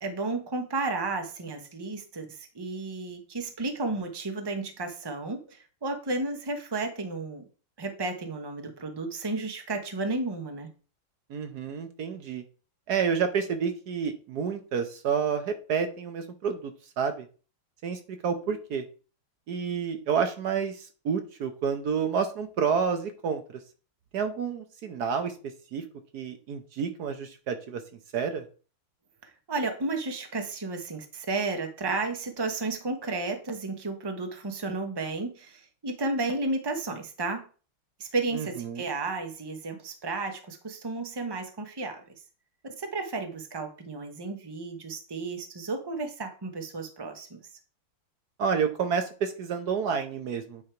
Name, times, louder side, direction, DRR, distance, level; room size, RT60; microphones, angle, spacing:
voice 1, 0.0-7.4 7.8-10.7 29.2-37.5 38.0-42.0 42.8-47.4, right 3 dB, 40° right, 5 dB, 0.3 m, -33 dB
voice 2, 11.3-12.4 12.9-17.2 17.8-18.8 19.5-20.8 21.0-23.4 24.1-25.3 25.7-25.8 26.1-27.8 28.1-28.4 38.3-38.8 48.4-50.6, right 6 dB, 60° right, 7 dB, 1.2 m, -29 dB
9.5 x 3.3 x 4.4 m, 0.37 s
omnidirectional pair, 2.3 m